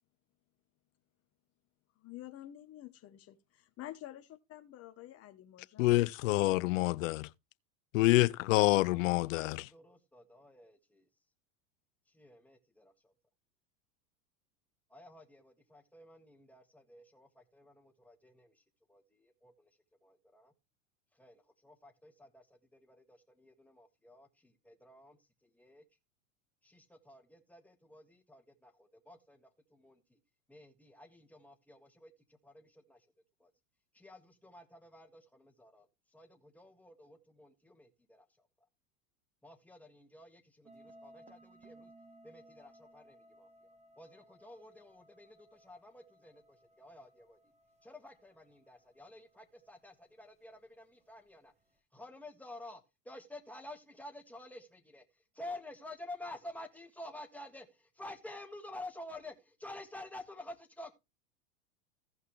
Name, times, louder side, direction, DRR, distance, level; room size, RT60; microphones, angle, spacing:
voice 1, 2.0-6.1 6.5-6.6, left 13 dB, 35° left, 1.0 m, -49 dB
voice 2, 5.8-7.3 7.9-9.7, left 19 dB, 70° left, 0.6 m, -27 dB
voice 3, 8.9-11.0 12.1-13.1 14.9-18.6 18.9-19.7 20.0-20.5 21.2-25.8 26.6-30.2 30.5-32.1 32.4-33.0 33.4-33.5 33.9-35.9 36.1-38.3 39.4-41.9 42.2-43.5 44.0-47.4 47.8-51.5 51.9-55.0 55.3-60.9, left 1 dB, 5° left, 1.8 m, -51 dB
sound 1, 40.7-50.0, right 1 dB, 15° right, 1.7 m, -61 dB
15.5 x 5.5 x 3.3 m
hypercardioid pair, 100°, 41 cm